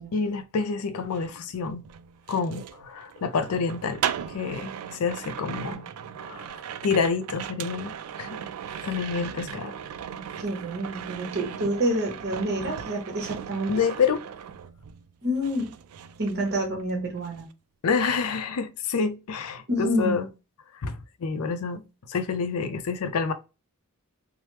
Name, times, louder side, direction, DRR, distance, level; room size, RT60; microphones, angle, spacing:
voice 1, 0.1-1.9 2.3-4.0 4.3-5.8 6.2-8.4 8.8-9.8 13.7-14.2 17.8-20.3 20.8-21.8 22.1-23.3, left 5 dB, 90° left, 0.4 m, -28 dB
sound 1, 1.0-15.1 15.4-16.9 17.2-17.5, right 9 dB, 80° right, 0.3 m, -38 dB
voice 2, 10.4-13.7 15.2-15.7 16.2-17.5 19.7-20.1, equal, 45° right, 0.9 m, -28 dB
3.2 x 2.0 x 3.0 m
head